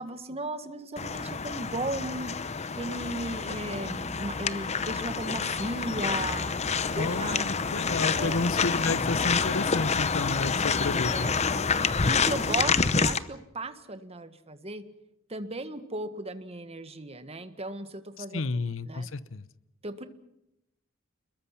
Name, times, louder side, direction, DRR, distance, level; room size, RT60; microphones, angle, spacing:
voice 1, 0.0-6.5 6.9-7.5 8.2-8.4 11.1-14.8 15.3-18.4 18.9-19.1 19.8-20.1, right 2 dB, 30° right, 10 dB, 1.6 m, -36 dB
sound 1, 1.0-13.2, left 5 dB, 35° left, 0.8 m, -28 dB
voice 2, 6.9-11.3 18.2-19.5, left 3 dB, 70° left, 16 dB, 0.9 m, -31 dB
29.5 x 21.5 x 5.9 m, 0.84 s
head